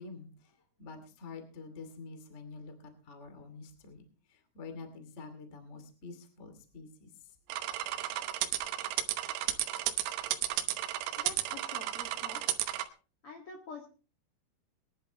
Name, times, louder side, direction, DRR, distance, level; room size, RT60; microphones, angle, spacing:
voice 1, 0.0-2.7 3.0-4.0 4.3-7.3, left 4 dB, 40° left, 7 dB, 0.9 m, -47 dB
sound 1, 7.5-12.9, right 13 dB, 85° right, 3.8 m, -33 dB
voice 2, 11.2-12.6 13.2-13.8, left 3 dB, 60° left, 1 dB, 1.4 m, -47 dB
22.5 x 11.0 x 3.1 m, 0.36 s
omnidirectional pair, 5.9 m